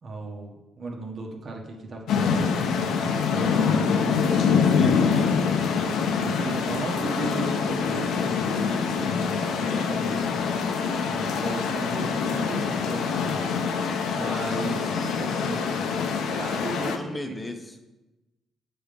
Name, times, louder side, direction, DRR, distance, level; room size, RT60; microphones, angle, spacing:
voice 1, 0.0-3.9 4.6-5.1 6.2-8.5 9.0-10.2 11.0-13.4 14.1-14.9 15.2-15.7 16.3-17.4, right 2 dB, 50° right, 1 dB, 1.2 m, -36 dB
sound 1, 2.1-17.0, left 6 dB, 80° left, 0.6 m, -25 dB
voice 2, 4.7-5.7 9.7-9.9 14.6-15.1 16.9-17.8, left 1 dB, 15° left, 5 dB, 0.9 m, -38 dB
7.9 x 3.5 x 5.3 m, 1.0 s
cardioid pair, 90°, 0 cm